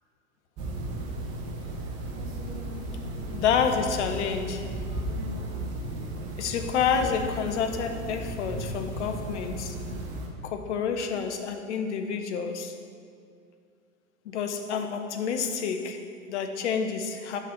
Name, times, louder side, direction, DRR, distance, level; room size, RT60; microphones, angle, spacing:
sound 1, 0.6-10.3, right 1 dB, 10° right, 0.3 m, -35 dB
voice 1, 3.3-4.7 6.4-9.7 10.4-12.8 14.2-17.4, left 6 dB, 55° left, 6 dB, 0.9 m, -29 dB
6.7 x 5.9 x 5.9 m, 2.3 s
figure-of-eight pair, 105°, 42 cm